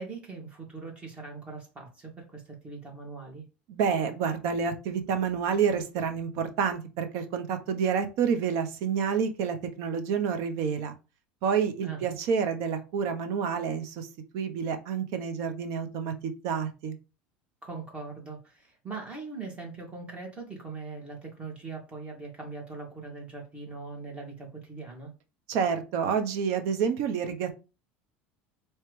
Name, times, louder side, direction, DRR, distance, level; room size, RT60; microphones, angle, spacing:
voice 1, 0.0-3.4 11.8-12.2 17.6-25.1, right 4 dB, 20° right, 2.5 m, -41 dB
voice 2, 3.7-10.9 11.4-14.1 14.3-16.9 25.5-27.5, right 6 dB, 65° right, 0.9 m, -28 dB
4.4 x 3.2 x 3.2 m
supercardioid pair, 100°, 5 cm